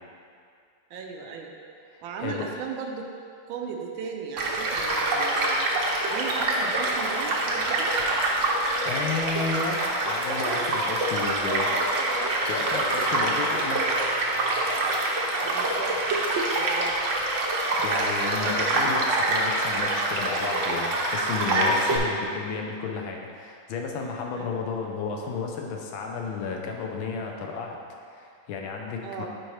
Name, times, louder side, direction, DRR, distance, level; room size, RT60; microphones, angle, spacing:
voice 1, 0.9-1.5 2.0-3.1 3.5-5.7 6.1-7.9 13.0-13.3 15.4-16.0 16.5-17.0 24.4-24.6 29.0-29.3, right 5 dB, 80° right, 2 dB, 1.5 m, -36 dB
voice 2, 1.9-2.5 8.8-11.7 12.5-13.8 17.7-27.8 28.1-29.3, left 4 dB, 90° left, 1 dB, 1.6 m, -32 dB
Child speech kid speaking / Stream / Car passing by, 4.4-22.0, right 2 dB, 55° right, 0.9 m, -25 dB
9.8 x 4.5 x 3.2 m, 2.3 s
omnidirectional pair, 2.1 m